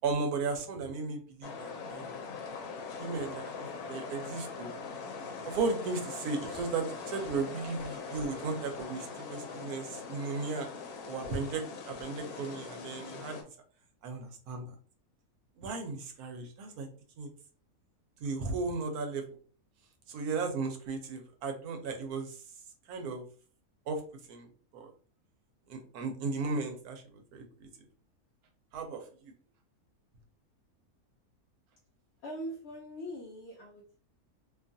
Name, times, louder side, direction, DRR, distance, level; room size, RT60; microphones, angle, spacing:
voice 1, 0.0-2.1 3.0-4.7 5.4-10.7 11.1-13.4 14.0-14.7 15.6-16.9 17.2-17.3 18.2-19.2 20.1-22.4 22.9-23.2 23.9-24.0 24.3-24.5 24.7-24.9 25.7-27.4 28.7-29.3, right 4 dB, 85° right, 4 dB, 1.2 m, -35 dB
sound 1, 1.4-13.4, left 5 dB, 80° left, 1.1 m, -42 dB
voice 2, 32.2-34.0, equal, 65° left, -2 dB, 0.7 m, -42 dB
2.8 x 2.3 x 2.6 m, 0.42 s
omnidirectional pair, 1.6 m